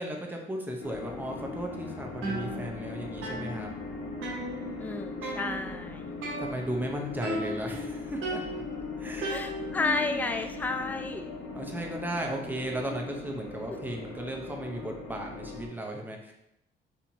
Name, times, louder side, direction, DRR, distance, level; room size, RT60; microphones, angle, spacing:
voice 1, 0.0-3.8 5.5-6.0 6.4-8.4 9.0-9.4 9.7-10.3 11.5-16.3, right 1 dB, 10° right, 1 dB, 0.7 m, -36 dB
sound 1, 0.8-15.7, left 4 dB, 70° left, 1.0 m, -39 dB
sound 2, 2.2-2.9 3.2-4.9 5.2-5.8 6.2-6.9 7.2-7.8 8.2-9.9, right 2 dB, 85° right, 0.9 m, -36 dB
voice 2, 4.8-6.1 9.3-11.5, left 3 dB, 10° left, 6 dB, 0.3 m, -32 dB
4.3 x 2.8 x 2.7 m, 0.83 s
cardioid pair, 90°, 20 cm